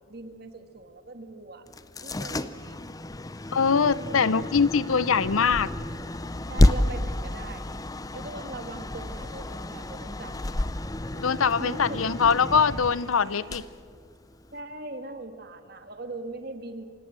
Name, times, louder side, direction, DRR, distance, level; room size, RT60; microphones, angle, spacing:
voice 1, 0.1-1.7 2.0-2.8 3.9-4.4 5.2-5.3 6.5-7.7 8.1-10.5 11.1-11.2 11.6-12.1 14.5-16.8, right 2 dB, 50° right, 7 dB, 1.8 m, -40 dB
sound 1, 1.7-14.6, left 1 dB, 15° left, 0.5 m, -30 dB
sound 2, 3.0-13.6, equal, 15° right, 4.8 m, -48 dB
voice 2, 3.5-5.7 11.2-13.6, left 6 dB, 85° left, 18 dB, 0.7 m, -23 dB
27.5 x 18.0 x 7.6 m, 2.1 s
head